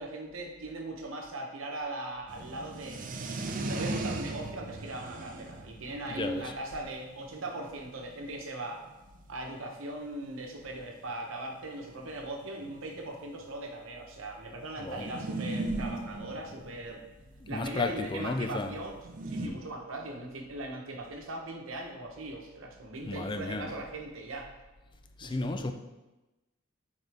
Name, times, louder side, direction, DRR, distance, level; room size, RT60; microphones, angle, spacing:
voice 1, 0.0-3.1 3.6-8.8 9.3-17.0 17.5-19.0 19.3-24.5 25.2-25.7, right 2 dB, 75° right, 2 dB, 1.0 m, -39 dB
sound 1, 2.3-8.4 9.1-9.2 9.3-9.4 9.6-9.8 10.7-10.8 11.1-11.2 12.0-13.5 14.9-17.6 19.0-19.5, right 2 dB, 40° right, 0.5 m, -37 dB
voice 2, 6.1-6.5 14.8-15.1 17.4-18.8 19.4-19.6 23.1-23.7 25.2-25.7, left 3 dB, 25° left, 7 dB, 0.4 m, -33 dB
7.5 x 4.1 x 3.4 m, 1.0 s
head